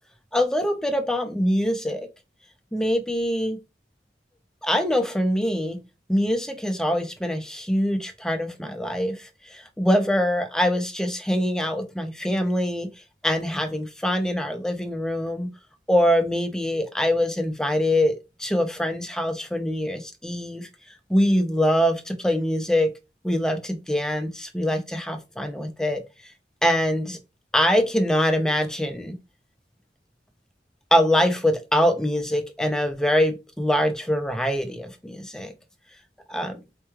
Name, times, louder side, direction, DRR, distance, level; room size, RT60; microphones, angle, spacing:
voice 1, 0.3-2.1 2.7-3.6 4.6-5.8 6.1-12.9 13.2-15.5 15.9-20.7 21.1-22.9 23.2-26.0 26.6-27.2 27.5-29.2 30.9-35.5 36.3-36.6, equal, 5° left, 0.5 m, -24 dB
4.4 x 3.1 x 2.3 m
head